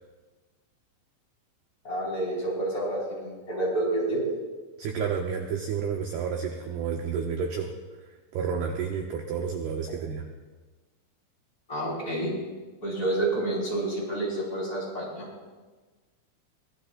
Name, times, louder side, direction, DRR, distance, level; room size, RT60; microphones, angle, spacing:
voice 1, 1.8-4.3 11.7-12.3 12.8-15.3, right 1 dB, 20° left, -5 dB, 5.3 m, -29 dB
voice 2, 4.8-7.7 8.3-10.3, right 6 dB, 75° right, 2 dB, 2.5 m, -30 dB
22.5 x 18.5 x 2.6 m, 1.3 s
omnidirectional pair, 5.7 m